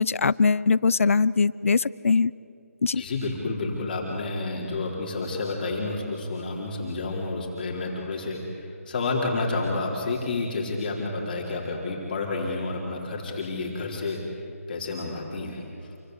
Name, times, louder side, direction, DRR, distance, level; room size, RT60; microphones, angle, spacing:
voice 1, 0.0-2.3 2.8-3.0, left 4 dB, 60° left, 20 dB, 0.7 m, -21 dB
voice 2, 2.9-14.2 14.7-15.9, left 3 dB, 35° left, -2 dB, 4.2 m, -30 dB
28.5 x 25.5 x 8.1 m, 2.5 s
figure-of-eight pair, 165°, 8 cm